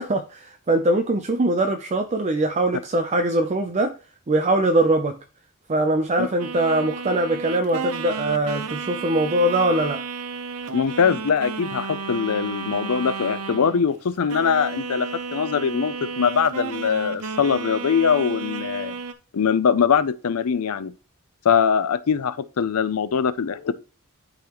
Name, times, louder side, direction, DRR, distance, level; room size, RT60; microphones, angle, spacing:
voice 1, 0.0-3.9 4.3-5.1 5.7-10.0, right 1 dB, 30° right, 0.5 m, -22 dB
sound 1, 6.4-13.9 14.3-19.1, right 5 dB, 80° right, 0.7 m, -33 dB
voice 2, 10.7-18.9 19.3-20.9 21.4-23.7, left 6 dB, 80° left, 0.5 m, -22 dB
11.5 x 3.9 x 3.0 m
head